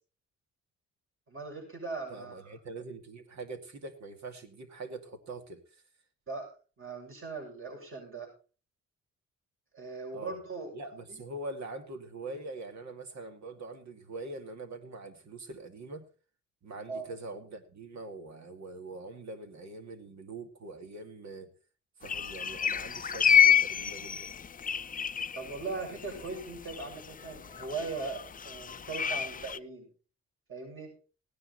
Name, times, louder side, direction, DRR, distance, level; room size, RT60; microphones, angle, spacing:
voice 1, 1.3-2.5 6.3-6.5 6.8-8.3 9.7-10.7 11.1-11.2 16.9-17.1 25.3-29.9 30.5-30.9, right 3 dB, 45° right, 1 dB, 7.0 m, -39 dB
voice 2, 2.1-5.6 10.1-10.4 10.7-16.0 16.6-21.5 22.0-24.3, right 2 dB, 65° right, 6 dB, 2.5 m, -43 dB
sound 1, 22.0-29.6, left 8 dB, 30° left, 0.5 m, -29 dB
17.0 x 10.0 x 4.2 m, 0.36 s
cardioid pair, 75°, 29 cm